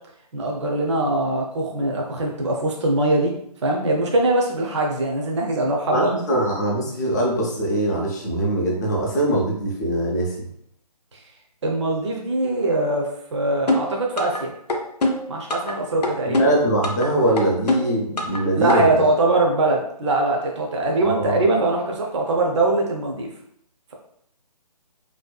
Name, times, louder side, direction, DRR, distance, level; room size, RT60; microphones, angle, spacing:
voice 1, 0.3-3.3 3.6-6.1 11.6-14.5 15.3-16.4 18.5-23.3, right 2 dB, 45° right, 0 dB, 0.5 m, -22 dB
voice 2, 5.9-10.5 16.3-19.1 21.0-21.4, right 1 dB, 25° left, -3 dB, 0.5 m, -22 dB
sound 1, 13.7-14.4 14.7-15.7 16.0-17.1 17.4-18.4 18.7-18.8, left 1 dB, 80° left, 0.5 m, -22 dB
2.6 x 2.2 x 2.2 m, 0.70 s
figure-of-eight pair, 155°, 21 cm